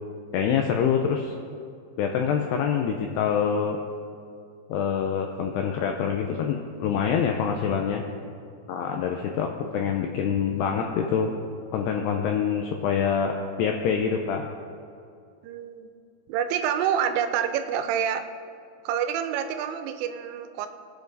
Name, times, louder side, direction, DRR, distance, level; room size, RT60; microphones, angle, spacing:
voice 1, 0.3-1.3 2.0-3.8 4.7-8.0 8.7-11.3 11.7-14.5, left 7 dB, 85° left, 3 dB, 2.4 m, -25 dB
voice 2, 15.4-15.9 16.3-18.3 18.9-20.7, right 8 dB, 90° right, 8 dB, 3.3 m, -27 dB
20.5 x 7.6 x 4.0 m, 2.5 s
omnidirectional pair, 5.6 m